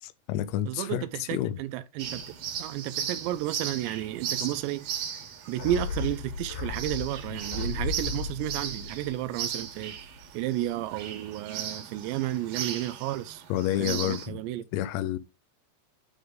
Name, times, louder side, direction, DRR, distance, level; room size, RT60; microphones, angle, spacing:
voice 1, 0.0-1.6 4.4-4.5 13.5-14.4 14.7-15.2, left 12 dB, 85° left, 2.9 m, -29 dB
voice 2, 0.7-2.2 2.6-4.8 5.5-9.9 10.3-13.4 13.8-14.6, right 13 dB, 90° right, 2.5 m, -32 dB
sound 1, 2.0-14.3, right 8 dB, 65° right, 2.4 m, -37 dB
sound 2, 5.6-10.2 10.4-10.5, left 4 dB, 55° left, 2.7 m, -35 dB
9.5 x 3.6 x 3.7 m
omnidirectional pair, 5.6 m